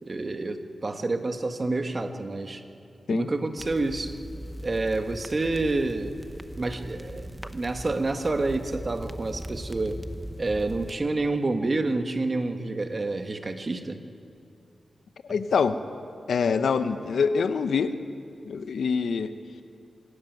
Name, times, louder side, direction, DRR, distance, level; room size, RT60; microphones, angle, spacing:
voice 1, 0.0-2.6 3.1-4.1 4.6-6.1 6.6-10.0 10.4-14.0, right 2 dB, 40° right, 6 dB, 1.5 m, -28 dB
sound 1, 3.6-11.0, equal, 10° right, 1.0 m, -39 dB
voice 2, 15.3-15.8 16.3-17.9 18.4-19.3, left 5 dB, 85° left, 11 dB, 0.9 m, -25 dB
26.0 x 13.5 x 9.3 m, 2.5 s
wide cardioid pair, 80°, 0 cm